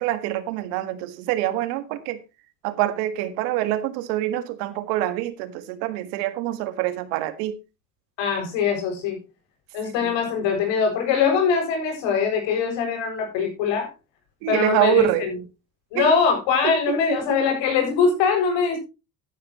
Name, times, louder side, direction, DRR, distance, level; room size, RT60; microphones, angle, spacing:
voice 1, 0.0-2.2 2.6-7.6 10.0-10.1 14.4-15.3 15.9-16.1 16.6-17.2, right 14 dB, 80° right, 1.8 m, -25 dB
voice 2, 8.2-9.2 9.7-13.9 14.5-15.4 15.9-18.8, left 6 dB, 70° left, 7.5 m, -22 dB
12.5 x 11.5 x 3.0 m
supercardioid pair, 85°, 46 cm